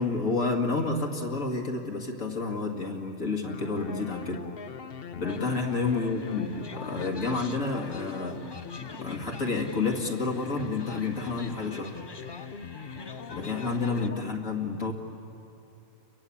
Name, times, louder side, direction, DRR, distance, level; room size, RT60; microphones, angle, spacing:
voice 1, 0.0-4.5 5.2-8.4 8.9-12.0 13.3-14.9, left 3 dB, 65° left, 0 dB, 2.4 m, -30 dB
sound 1, 3.5-14.3, left 6 dB, 50° left, 1.0 m, -42 dB
sound 2, 5.3-14.1, left 4 dB, 30° left, 0.5 m, -46 dB
29.5 x 22.0 x 8.6 m, 2.8 s
omnidirectional pair, 1.4 m